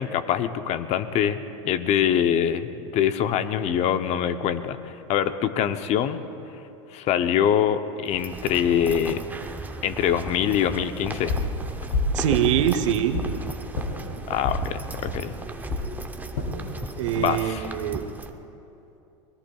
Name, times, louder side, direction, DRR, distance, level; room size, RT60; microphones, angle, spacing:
voice 1, 0.0-6.2 6.9-9.2 9.8-11.4 14.3-15.3 17.2-17.7, left 9 dB, 45° left, 11 dB, 0.7 m, -24 dB
sound 1, 8.1-18.3, right 3 dB, 10° right, 0.8 m, -36 dB
sound 2, 11.3-11.6 11.9-12.2 12.5-13.3 13.7-13.9 14.4-14.6 15.1-15.2 15.7-15.9 16.3-16.5 17.1-17.5, left 2 dB, 70° left, 3.2 m, -27 dB
voice 2, 12.1-13.2 16.9-18.0, right 10 dB, 75° right, 11 dB, 0.9 m, -24 dB
25.0 x 19.5 x 2.4 m, 2.8 s
hypercardioid pair, 105°, 16 cm